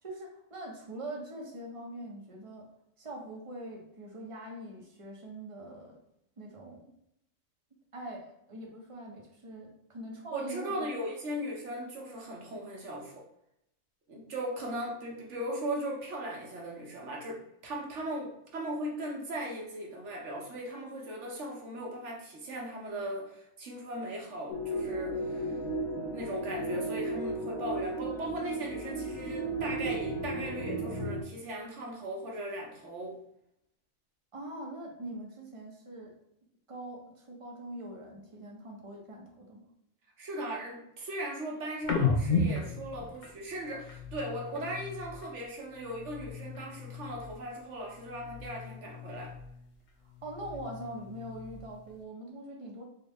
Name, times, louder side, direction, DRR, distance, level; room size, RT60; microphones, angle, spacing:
voice 1, 0.0-2.7 3.0-6.0 6.4-6.9 7.9-10.9 34.3-36.2 36.7-39.7 50.2-52.8, right 1 dB, 35° right, -1 dB, 0.6 m, -43 dB
voice 2, 10.3-13.2 14.1-25.6 26.1-33.2 40.2-49.3, right 1 dB, 65° right, -1 dB, 1.1 m, -38 dB
sound 1, 24.5-31.2, right 1 dB, 85° left, 1.1 m, -34 dB
sound 2, 41.8-45.4 45.7-47.6 47.8-49.7 50.1-51.9, left 4 dB, 65° left, 0.4 m, -35 dB
3.7 x 2.0 x 3.5 m, 0.77 s
omnidirectional pair, 1.3 m